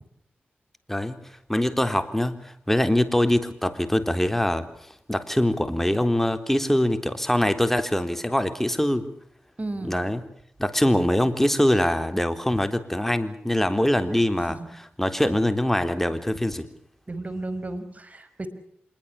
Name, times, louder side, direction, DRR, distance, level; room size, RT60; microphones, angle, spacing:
voice 1, 0.9-1.2 1.5-9.1 9.8-10.2 10.6-16.7, left 1 dB, 5° left, 9 dB, 3.8 m, -23 dB
voice 2, 9.6-10.0 14.5-14.7 17.1-18.5, right 2 dB, 35° right, 12 dB, 5.5 m, -33 dB
26.5 x 21.5 x 7.2 m, 0.69 s
cardioid pair, 45°, 4 cm